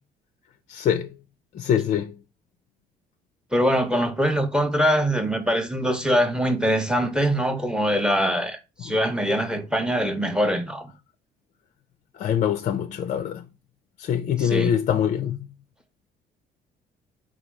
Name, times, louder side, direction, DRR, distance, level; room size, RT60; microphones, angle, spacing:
voice 1, 0.7-1.1 1.5-2.2 12.1-13.4 14.0-15.4, left 9 dB, 45° left, 0.4 m, -24 dB
voice 2, 3.5-10.9 14.4-14.7, equal, 5° right, 0.7 m, -23 dB
4.0 x 2.3 x 4.6 m
cardioid pair, 110°, 17 cm